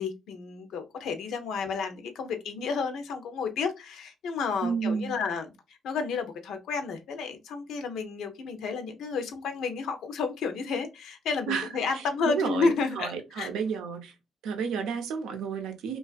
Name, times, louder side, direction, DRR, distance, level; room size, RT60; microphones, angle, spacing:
voice 1, 0.0-13.5, left 5 dB, 80° left, 0.5 m, -31 dB
voice 2, 4.6-5.1 11.5-11.7 12.2-12.7 13.0-14.1 14.4-16.0, right 6 dB, 85° right, 0.6 m, -31 dB
2.5 x 2.3 x 2.3 m
cardioid pair, 90°, 0 cm